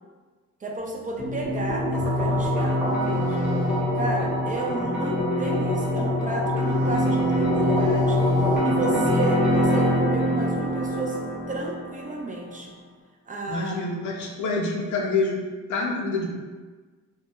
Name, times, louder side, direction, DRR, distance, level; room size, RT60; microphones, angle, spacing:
voice 1, 0.6-3.4 3.9-8.2 8.6-11.2 11.5-12.7 13.3-13.8, right 2 dB, 25° right, 0 dB, 0.4 m, -32 dB
sound 1, 1.2-12.2, equal, ahead, 0.8 m, -24 dB
sound 2, 1.9-3.8 6.6-8.6, right 2 dB, 75° right, 1.0 m, -43 dB
voice 2, 13.5-15.4 15.7-16.3, left 3 dB, 70° left, 0 dB, 0.6 m, -26 dB
2.2 x 2.1 x 2.9 m, 1.4 s
cardioid pair, 90°, 30 cm